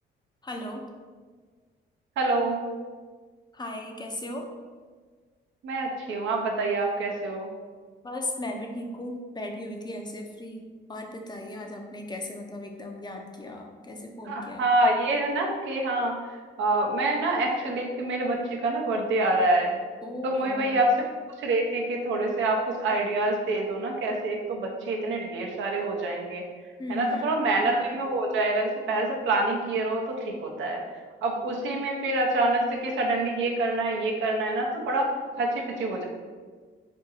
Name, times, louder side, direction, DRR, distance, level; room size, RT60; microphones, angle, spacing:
voice 1, 0.4-0.8 3.5-4.5 8.0-14.7 20.0-20.8 26.8-27.3, left 1 dB, 20° left, 2 dB, 0.4 m, -36 dB
voice 2, 2.2-2.7 5.6-7.5 14.2-19.8 20.2-21.0 21.4-26.4 26.9-30.8 31.2-35.1 35.4-36.0, right 2 dB, 75° right, 1 dB, 0.6 m, -26 dB
2.7 x 2.6 x 3.9 m, 1.5 s
cardioid pair, 90°, 20 cm